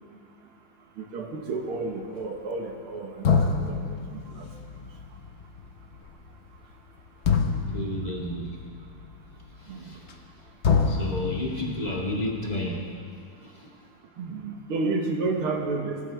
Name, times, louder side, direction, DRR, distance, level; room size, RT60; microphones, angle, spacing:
voice 1, 1.0-3.8 4.1-4.5 9.7-9.9 14.2-16.0, right 3 dB, 90° right, 2 dB, 2.2 m, -31 dB
sound 1, 2.7-2.8 3.2-10.4 10.6-12.7, left 5 dB, 65° left, 0.6 m, -28 dB
voice 2, 7.4-8.6 9.6-10.0 10.8-12.8 13.4-13.7, left 1 dB, 20° left, -3 dB, 1.9 m, -32 dB
21.0 x 12.0 x 3.4 m, 2.2 s
omnidirectional pair, 2.3 m